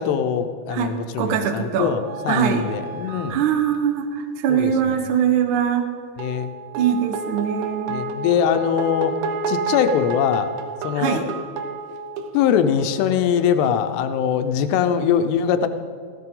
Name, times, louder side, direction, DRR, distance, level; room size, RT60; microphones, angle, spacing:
voice 1, 0.0-3.4 4.5-5.0 6.2-6.5 7.9-9.2 9.5-10.5 10.8-11.2 12.3-15.7, left 8 dB, 85° left, 9 dB, 2.8 m, -22 dB
voice 2, 0.7-1.9 2.3-2.6 3.1-5.9 6.7-8.1 11.0-11.3, right 8 dB, 65° right, 5 dB, 2.1 m, -22 dB
sound 1, 1.2-1.3 2.0-3.8 6.2-13.8, right 4 dB, 80° right, 3.0 m, -31 dB
18.0 x 14.5 x 3.8 m, 2.1 s
omnidirectional pair, 4.8 m